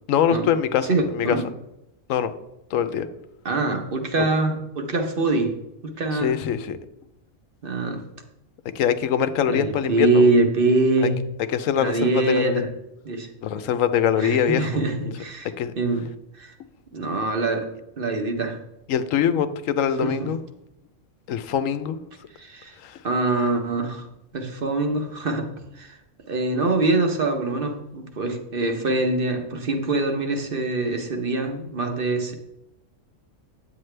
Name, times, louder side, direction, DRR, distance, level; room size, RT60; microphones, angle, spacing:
voice 1, 0.1-1.4 2.1-2.3 2.7-3.1 6.1-6.8 8.7-10.2 11.0-11.1 11.5-12.7 13.4-14.8 15.6-15.7 18.9-20.4 21.3-22.0 22.8-23.0, left 8 dB, 90° left, 11 dB, 1.0 m, -23 dB
voice 2, 0.9-1.4 3.4-5.6 5.8-6.4 7.6-8.0 9.5-11.2 11.8-12.7 13.1-13.3 14.2-15.5 15.8-16.1 16.3-16.5 16.9-18.6 20.0-20.3 22.4-22.8 23.0-24.1 24.3-25.5 25.7-26.0 26.3-32.3, right 2 dB, 50° right, 5 dB, 1.1 m, -24 dB
9.2 x 8.0 x 3.3 m, 0.88 s
omnidirectional pair, 1.3 m